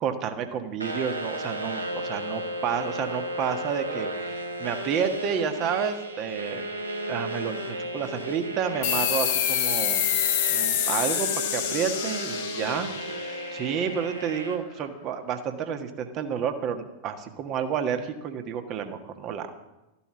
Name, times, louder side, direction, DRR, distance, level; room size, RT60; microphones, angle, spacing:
voice 1, 0.0-6.6 7.1-10.1 10.5-12.9 13.2-19.5, right 8 dB, 35° right, 7 dB, 1.5 m, -30 dB
sound 1, 0.8-14.5, right 1 dB, 80° right, 1.6 m, -34 dB
sound 2, 8.8-14.0, left 10 dB, 50° left, 1.5 m, -27 dB
13.5 x 12.0 x 5.9 m, 0.97 s
figure-of-eight pair, 90°, 0 cm